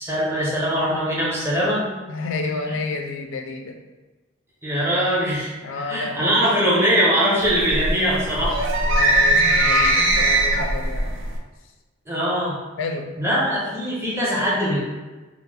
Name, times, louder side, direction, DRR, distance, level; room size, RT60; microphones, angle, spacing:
voice 1, 0.0-1.9 4.6-8.6 12.1-12.6 13.2-14.8, equal, 10° right, -8 dB, 0.8 m, -22 dB
voice 2, 2.1-3.8 5.6-6.4 8.8-11.2 12.8-13.1, left 3 dB, 70° left, 4 dB, 0.4 m, -30 dB
sound 1, 7.4-11.4, right 1 dB, 65° right, 0.4 m, -20 dB
3.2 x 2.1 x 3.3 m, 1.2 s
head